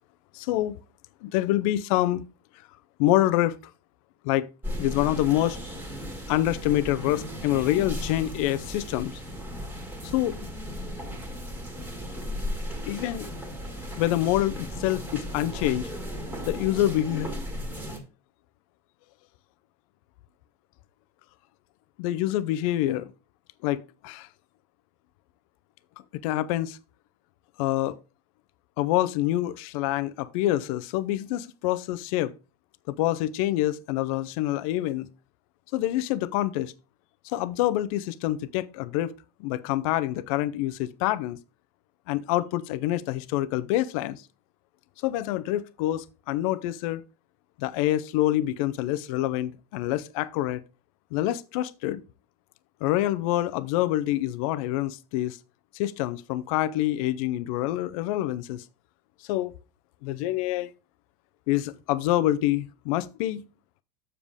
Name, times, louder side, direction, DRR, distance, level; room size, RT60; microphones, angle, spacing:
voice 1, 0.3-0.8 1.2-2.2 3.0-3.6 4.2-4.5 4.8-5.6 6.3-9.2 10.0-10.4 12.8-13.3 14.0-15.9 16.5-17.3 22.0-23.1 23.6-24.3 26.1-26.8 27.6-28.0 28.8-32.3 32.9-35.1 35.7-36.7 37.2-39.1 39.4-41.4 42.1-44.2 45.0-47.0 47.6-50.6 51.1-52.0 52.8-55.4 55.7-58.6 59.3-59.5 60.0-60.7 61.5-63.4, left 14 dB, 60° left, 0.6 m, -26 dB
sound 1, 4.6-18.0, equal, 10° right, 1.9 m, -36 dB
7.4 x 6.8 x 3.5 m
supercardioid pair, 145°, 20 cm